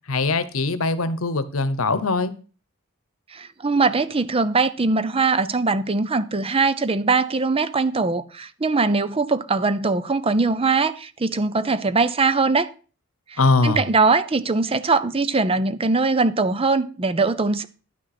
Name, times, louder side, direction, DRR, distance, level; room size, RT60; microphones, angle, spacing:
voice 1, 0.1-2.3 13.4-13.9, left 3 dB, 75° left, 1.0 m, -21 dB
voice 2, 3.3-12.7 13.3-17.6, right 3 dB, 25° right, 0.6 m, -21 dB
11.0 x 6.4 x 5.9 m
head